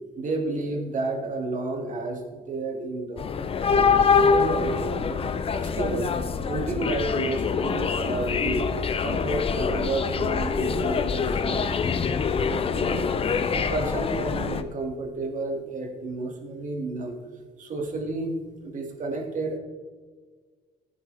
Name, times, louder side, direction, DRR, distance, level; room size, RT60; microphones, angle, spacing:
voice 1, 0.2-4.0 4.3-5.2 5.6-6.1 6.4-8.7 9.0-12.1 12.4-13.1 13.5-17.2 17.6-18.4 18.6-19.6, right 2 dB, 50° right, 2 dB, 2.4 m, -31 dB
sound 1, 3.2-14.6, left 5 dB, 35° left, 0.7 m, -25 dB
15.5 x 9.2 x 3.5 m, 1.5 s
cardioid pair, 110°, 17 cm